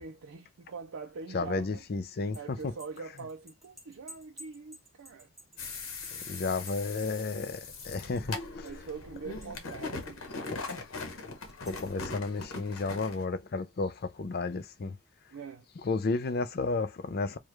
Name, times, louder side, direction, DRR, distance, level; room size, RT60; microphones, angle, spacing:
voice 1, 0.0-5.3 8.6-10.6 15.3-15.7, right 5 dB, 80° right, 0.5 m, -44 dB
voice 2, 1.3-2.7 6.1-8.7 10.5-10.8 11.6-15.0 15.8-17.4, left 3 dB, 50° left, 0.5 m, -32 dB
sound 1, 2.1-8.4 8.7-9.9 10.5-11.1 11.5-12.0, right 1 dB, ahead, 1.0 m, -53 dB
sound 2, 5.6-13.2, left 3 dB, 85° left, 1.1 m, -41 dB
4.5 x 2.3 x 3.2 m
head